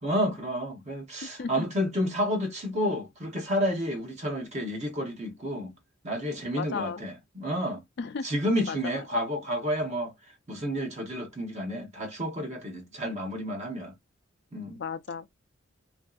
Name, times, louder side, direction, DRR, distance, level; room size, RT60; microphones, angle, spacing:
voice 1, 0.0-5.7 6.0-7.8 8.2-10.1 10.5-13.9 14.5-14.8, equal, 35° right, 0.8 m, -30 dB
voice 2, 1.2-1.7 6.6-7.0 8.0-8.3 8.7-8.8 14.8-15.3, left 5 dB, 60° left, 0.4 m, -34 dB
3.0 x 2.6 x 2.3 m
head